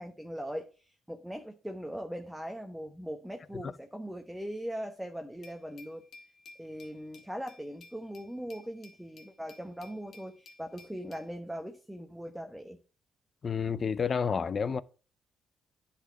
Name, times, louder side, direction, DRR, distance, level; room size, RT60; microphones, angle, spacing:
voice 1, 0.0-6.0 6.6-12.8, equal, 5° right, 1.0 m, -40 dB
Glass, 5.4-11.3, left 3 dB, 60° left, 1.9 m, -56 dB
voice 2, 13.4-14.8, left 6 dB, 45° left, 0.6 m, -29 dB
10.0 x 4.3 x 6.9 m
cardioid pair, 90°, 0 cm